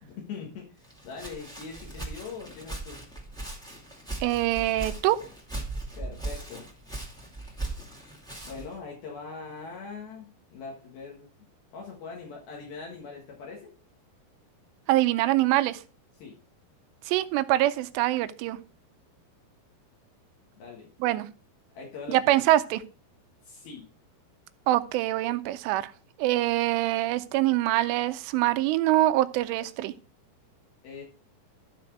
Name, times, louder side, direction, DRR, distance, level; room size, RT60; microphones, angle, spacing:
voice 1, 0.0-3.0 6.0-6.7 8.4-11.3 11.7-13.7 16.2-16.4 20.6-20.9 21.7-22.5 23.4-23.8 30.8-31.0, left 5 dB, 65° left, 3.1 m, -42 dB
Walk footsteps, 0.8-8.8, right 2 dB, 5° left, 0.5 m, -38 dB
voice 2, 4.2-5.2 14.9-15.8 17.1-18.6 21.0-21.3 22.1-22.8 24.7-25.9 26.2-29.9, right 15 dB, 85° right, 2.8 m, -24 dB
12.5 x 4.2 x 4.6 m
omnidirectional pair, 4.9 m